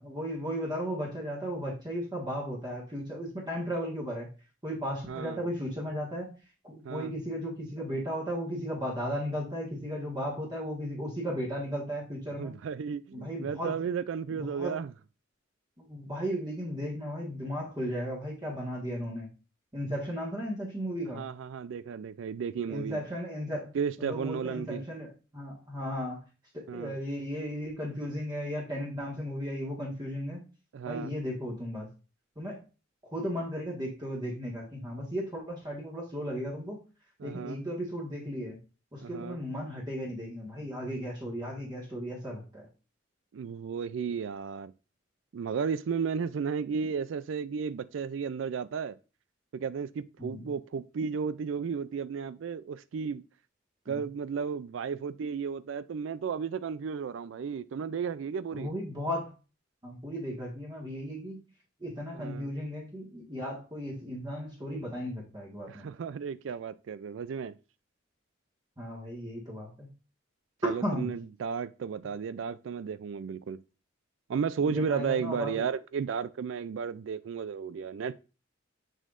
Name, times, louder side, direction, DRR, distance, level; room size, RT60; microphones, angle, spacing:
voice 1, 0.0-4.3 4.6-6.3 6.6-12.6 13.1-13.8 14.3-14.8 15.8-19.3 19.7-21.2 22.7-23.7 24.0-26.2 26.5-30.5 30.8-31.9 32.3-32.6 33.0-36.8 37.2-38.6 38.9-42.7 50.2-50.5 53.9-54.0 58.5-59.3 59.8-61.4 61.8-65.9 68.8-69.9 70.6-71.1 74.6-75.6, equal, 20° right, 1.6 m, -35 dB
voice 2, 5.1-5.5 6.8-7.1 12.4-14.9 21.1-23.0 23.7-24.8 26.7-27.0 30.7-31.1 37.2-37.6 39.0-39.4 43.3-44.7 45.3-49.0 49.5-53.2 53.9-58.7 62.1-62.5 65.7-67.5 70.6-73.6 74.3-78.2, right 6 dB, 70° right, 0.4 m, -34 dB
6.4 x 6.3 x 2.5 m
head